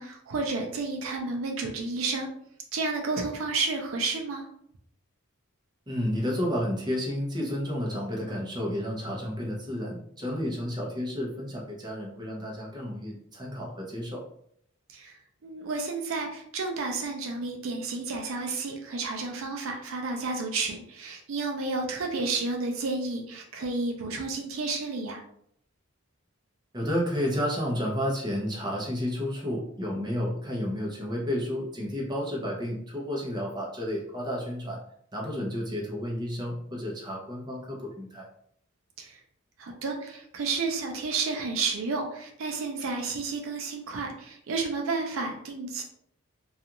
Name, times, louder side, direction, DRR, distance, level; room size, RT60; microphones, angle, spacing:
voice 1, 0.0-2.3 2.7-4.5 14.9-15.1 15.4-25.2 39.0-39.2 39.6-45.8, right 3 dB, 65° right, 2 dB, 0.4 m, -31 dB
voice 2, 5.9-14.2 26.7-34.8 35.1-38.3, equal, 20° right, -3 dB, 0.6 m, -31 dB
2.4 x 2.3 x 2.9 m, 0.69 s
head